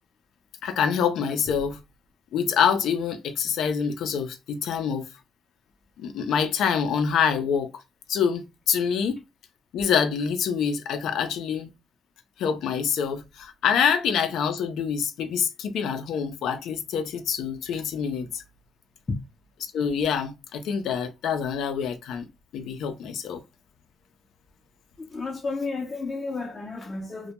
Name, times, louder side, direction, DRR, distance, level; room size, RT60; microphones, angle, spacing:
voice 1, 0.6-1.8 2.3-5.1 6.0-7.7 8.1-9.2 9.7-11.7 12.4-18.4 19.7-22.3 22.5-23.4, left 7 dB, 80° left, 0.4 m, -26 dB
voice 2, 25.0-27.3, left 3 dB, 35° left, 0.5 m, -32 dB
2.2 x 2.1 x 2.8 m
cardioid pair, 90°, 0 cm